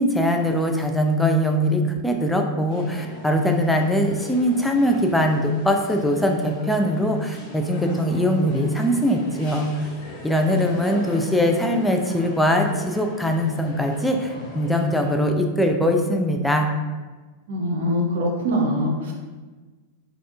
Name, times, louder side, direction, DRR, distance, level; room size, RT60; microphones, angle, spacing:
voice 1, 0.0-9.7 10.2-16.7, equal, 5° left, 2 dB, 0.3 m, -21 dB
sound 1, 2.7-15.1, left 1 dB, 45° left, 1.0 m, -38 dB
voice 2, 17.5-19.1, equal, 60° right, 0 dB, 0.6 m, -23 dB
3.4 x 2.4 x 2.5 m, 1.3 s
figure-of-eight pair, 90°, 0 cm